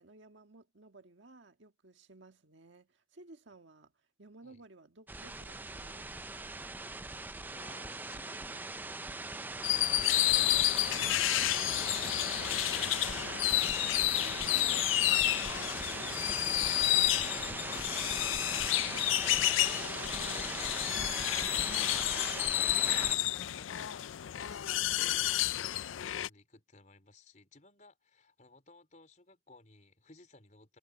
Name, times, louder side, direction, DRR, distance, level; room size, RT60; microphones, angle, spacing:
voice 1, 0.0-6.6 13.0-13.4 14.1-14.8 22.3-23.7, right 2 dB, 70° right, 1.6 m, -57 dB
sound 1, 5.1-23.2, right 2 dB, 10° right, 0.4 m, -40 dB
voice 2, 7.2-8.7 9.3-14.3 16.2-18.9 19.2-22.4 22.9-23.9 24.2-30.8, left 2 dB, 40° left, 4.2 m, -59 dB
sound 2, 9.6-26.3, left 15 dB, 85° left, 0.4 m, -30 dB
head